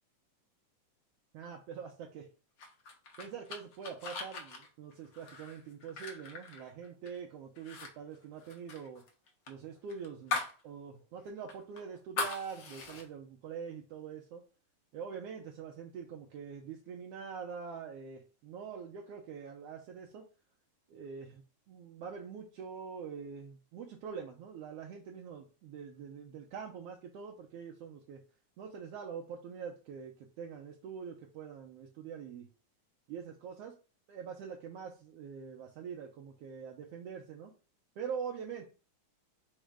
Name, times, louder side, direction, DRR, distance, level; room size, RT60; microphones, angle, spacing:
voice 1, 1.3-2.3 3.2-9.0 9.5-14.4 14.9-20.3 20.9-21.4 21.7-28.2 28.6-32.5 33.1-33.8 34.1-37.5 38.0-38.7, right 6 dB, 80° right, 1 dB, 1.4 m, -44 dB
sound 1, 2.6-7.2 7.6-7.9 8.2-10.6 11.0-11.1 11.5-13.0, left 4 dB, 85° left, 1.0 m, -40 dB
4.7 x 2.2 x 4.7 m, 0.35 s
omnidirectional pair, 3.4 m